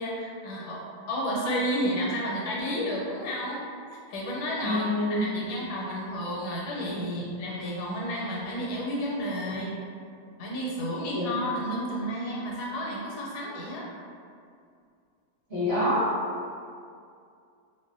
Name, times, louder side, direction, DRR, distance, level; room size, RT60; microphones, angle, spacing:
voice 1, 0.0-3.6 3.9-9.7 10.4-13.9, equal, 80° left, -4 dB, 1.1 m, -31 dB
voice 2, 4.6-5.3 11.1-11.3 15.5-16.1, left 1 dB, 40° right, -13 dB, 1.1 m, -26 dB
2.7 x 2.0 x 2.5 m, 2.3 s
omnidirectional pair, 1.8 m